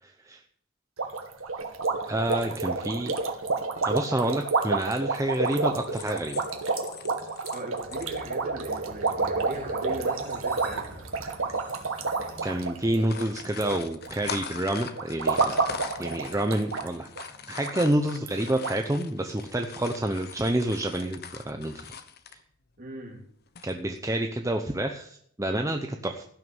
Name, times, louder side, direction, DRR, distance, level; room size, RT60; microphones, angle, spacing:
voice 1, 0.0-0.4 2.1-3.1 3.8-6.4 12.4-15.6 16.0-17.1 17.5-22.0 22.3-22.4 23.6-26.2, right 1 dB, 15° right, 5 dB, 0.8 m, -28 dB
sound 1, 1.0-13.7 14.0-14.4 15.0-16.9 17.2-17.3 17.6-17.7 18.3-18.4 18.6-18.8, right 3 dB, 70° right, 2.0 m, -29 dB
sound 2, 5.3-8.2 8.6-8.7 9.0-9.2 9.5-9.6 10.6-11.0 11.5-11.7 12.0-12.2 12.8-22.4 23.5-24.0, left 6 dB, 45° left, 1.1 m, -42 dB
voice 2, 7.5-11.1 22.8-23.2, right 2 dB, 40° right, 0 dB, 3.6 m, -39 dB
Train, 7.7-15.7, equal, 10° left, 3.2 m, -50 dB
16.0 x 6.6 x 7.2 m, 0.66 s
head